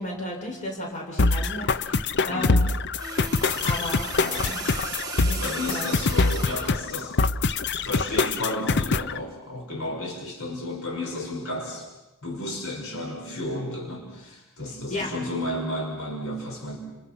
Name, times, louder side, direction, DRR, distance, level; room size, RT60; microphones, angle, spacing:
voice 1, 0.0-2.6 3.6-4.6 5.2-6.0 14.9-15.1, left 1 dB, 35° left, 0 dB, 7.0 m, -34 dB
sound 1, 1.2-9.2, left 3 dB, 55° left, 0.8 m, -24 dB
voice 2, 2.3-2.6 5.4-7.2 7.8-11.9 12.2-16.8, left 1 dB, 70° left, 1 dB, 5.4 m, -32 dB
sound 2, 3.0-6.9 8.0-8.2, right 5 dB, 20° right, 2.1 m, -36 dB
30.0 x 28.0 x 5.9 m, 1.1 s
head